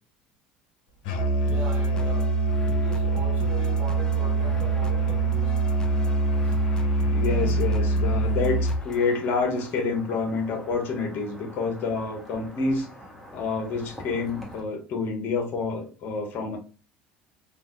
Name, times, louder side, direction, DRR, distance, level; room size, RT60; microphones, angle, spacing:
Musical instrument, 1.0-8.8, right 3 dB, 75° left, 0.8 m, -24 dB
voice 1, 1.4-5.5 6.4-6.6 13.2-13.4, right 3 dB, 45° right, 1.3 m, -41 dB
sound 1, 1.5-9.7, left 2 dB, 15° left, 0.4 m, -41 dB
sound 2, 3.4-14.6, left 1 dB, ahead, 1.3 m, -46 dB
voice 2, 7.1-12.9 13.3-16.6, left 4 dB, 55° left, 1.2 m, -28 dB
3.2 x 2.5 x 2.2 m
hypercardioid pair, 80°, 5 cm